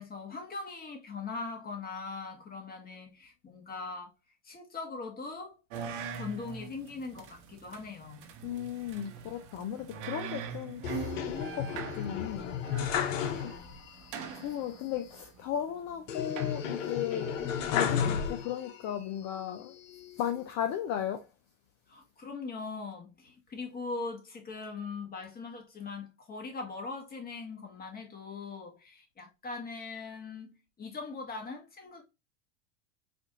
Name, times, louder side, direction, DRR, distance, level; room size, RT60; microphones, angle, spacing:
voice 1, 0.0-4.1 4.4-5.6 6.1-8.3 12.0-12.1 13.2-14.0 21.9-32.0, left 4 dB, 25° left, 1.4 m, -41 dB
sound 1, 5.7-17.1, right 7 dB, 60° right, 1.0 m, -43 dB
voice 2, 8.4-12.6 13.1-13.5 13.9-14.1 14.3-19.8 20.2-21.3, left 10 dB, 45° left, 0.7 m, -36 dB
sound 2, 10.8-13.9 14.2-14.3 16.1-18.8 19.4-20.2, left 8 dB, 80° left, 0.8 m, -33 dB
4.2 x 2.6 x 2.9 m
hypercardioid pair, 95°, 38 cm